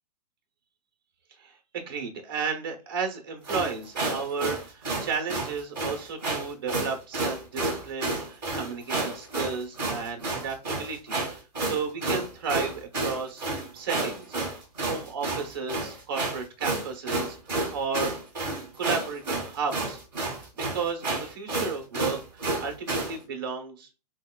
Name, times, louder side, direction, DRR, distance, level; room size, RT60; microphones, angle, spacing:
voice 1, 1.4-13.4 13.7-17.4 17.7-18.1 18.8-20.0 20.3-24.0, right 5 dB, 35° right, 5 dB, 0.7 m, -33 dB
sound 1, 3.4-23.2, right 2 dB, 10° right, 1.4 m, -30 dB
6.1 x 2.2 x 2.2 m, 0.30 s
hypercardioid pair, 175°, 21 cm